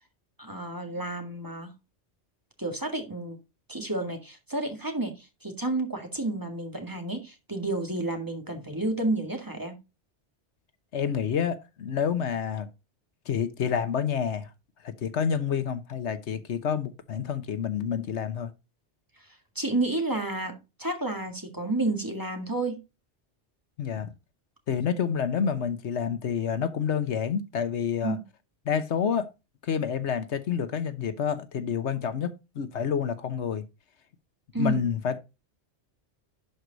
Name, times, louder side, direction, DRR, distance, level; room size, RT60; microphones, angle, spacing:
voice 1, 0.4-1.7 2.6-3.4 3.7-9.8 19.6-22.8 28.0-28.2 34.5-34.8, right 2 dB, 20° right, 1.9 m, -30 dB
voice 2, 10.9-12.7 13.3-14.5 14.8-18.5 23.8-24.1 24.7-28.2 28.6-29.3 29.6-33.6 34.5-35.2, left 7 dB, 75° left, 1.2 m, -28 dB
11.5 x 4.8 x 3.9 m
omnidirectional pair, 1.2 m